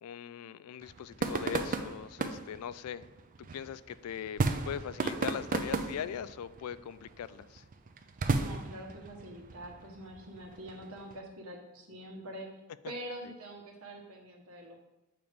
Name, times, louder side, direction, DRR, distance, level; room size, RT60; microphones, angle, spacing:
voice 1, 0.0-3.1 3.4-7.6, left 8 dB, 85° left, 16 dB, 0.3 m, -40 dB
sound 1, 0.8-11.1, right 3 dB, 40° right, 0.4 m, -36 dB
voice 2, 8.2-12.5 12.8-14.8, right 1 dB, 75° right, 1 dB, 1.3 m, -45 dB
7.7 x 3.0 x 5.1 m, 0.97 s
head